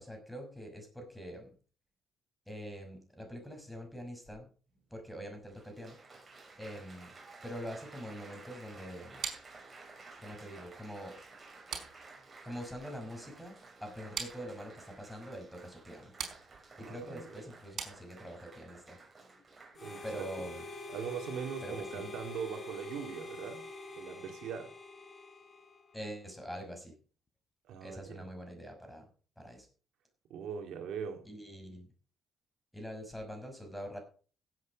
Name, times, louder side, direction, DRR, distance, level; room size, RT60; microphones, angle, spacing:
voice 1, 0.0-1.5 2.5-4.5 4.9-6.0 6.6-7.1 7.4-9.3 10.2-11.2 12.4-16.1 16.8-19.0 20.0-20.6 21.6-22.0 25.9-26.9 27.8-29.1 29.4-29.7 31.2-31.9 32.7-34.0, equal, ahead, 5.7 m, -44 dB
Applause, 4.7-4.8 5.5-21.4 22.1-22.5, right 3 dB, 30° right, 6.2 m, -54 dB
sound 1, 9.2-18.6, right 7 dB, 60° right, 4.7 m, -46 dB
voice 2, 16.8-17.3 19.8-20.3 20.9-23.6 24.0-24.7 27.7-28.3 30.3-31.3, right 7 dB, 80° right, 2.2 m, -41 dB
Harmonica, 19.7-26.1, left 3 dB, 35° left, 3.7 m, -46 dB
16.0 x 8.4 x 5.2 m
cardioid pair, 90°, 0 cm